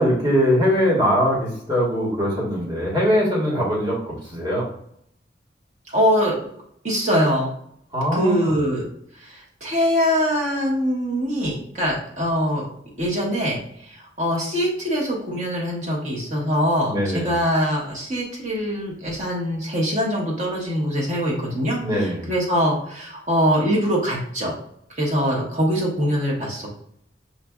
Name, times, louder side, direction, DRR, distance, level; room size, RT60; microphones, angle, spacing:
voice 1, 0.0-4.7 7.9-8.5 16.8-17.4 21.8-22.3, equal, 25° right, -5 dB, 1.4 m, -21 dB
voice 2, 5.9-6.4 6.8-7.5 8.1-8.9 9.2-12.7 13.0-24.5 25.0-26.8, equal, 40° right, -3 dB, 1.2 m, -23 dB
5.4 x 2.5 x 2.3 m, 0.69 s
head